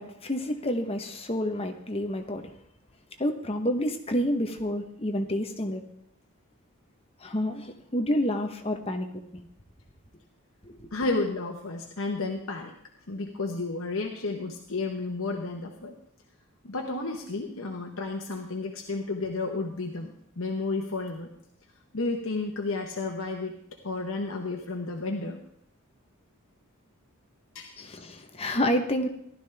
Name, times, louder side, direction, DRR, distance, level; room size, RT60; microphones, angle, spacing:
voice 1, 0.0-2.5 3.2-5.8 7.2-9.1 9.3-9.4 10.6-10.9 27.8-29.1, equal, 25° left, 5 dB, 1.0 m, -29 dB
voice 2, 10.9-12.7 13.1-15.9 16.6-21.3 21.9-23.6 23.8-25.4 27.5-27.7, left 3 dB, 70° left, 2 dB, 1.1 m, -32 dB
15.0 x 12.0 x 3.5 m, 0.72 s
head